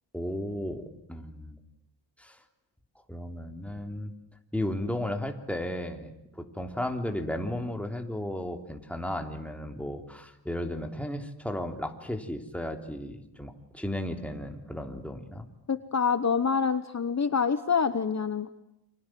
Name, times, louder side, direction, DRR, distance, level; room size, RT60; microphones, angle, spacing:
voice 1, 0.1-1.6 2.2-2.4 3.1-4.1 4.5-6.1 6.5-15.4, left 1 dB, 5° left, 4 dB, 3.4 m, -34 dB
voice 2, 15.7-18.5, left 6 dB, 40° left, 11 dB, 1.1 m, -26 dB
29.5 x 26.0 x 7.7 m, 0.83 s
wide cardioid pair, 115°, 41 cm